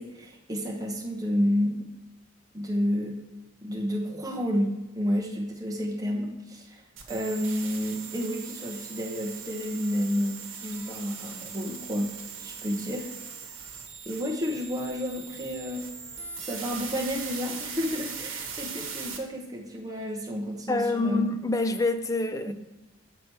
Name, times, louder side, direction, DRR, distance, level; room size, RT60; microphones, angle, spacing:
voice 1, 0.0-1.9 2.5-3.2 3.6-13.1 14.1-15.9 16.4-21.3 22.5-22.6, equal, 20° right, 0.9 m, -30 dB
sound 1, 7.0-19.2, right 6 dB, 65° right, 1.2 m, -40 dB
voice 2, 20.7-22.5, left 2 dB, 15° left, 0.3 m, -26 dB
6.7 x 6.0 x 4.6 m
head